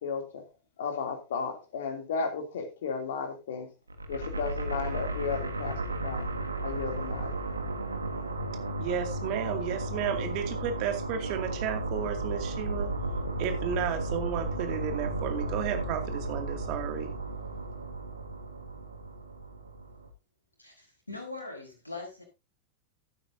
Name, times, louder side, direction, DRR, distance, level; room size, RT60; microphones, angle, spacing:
voice 1, 0.0-0.4 0.8-3.7 4.1-6.3 6.6-7.3, left 5 dB, 60° left, 3.0 m, -34 dB
sound 1, 3.9-20.1, right 2 dB, 80° right, 1.5 m, -34 dB
voice 2, 8.8-12.9 13.4-17.1, right 8 dB, 45° right, 2.4 m, -33 dB
voice 3, 20.6-22.2, left 3 dB, 85° left, 5.1 m, -41 dB
15.0 x 8.9 x 2.8 m
figure-of-eight pair, 90°, 0 cm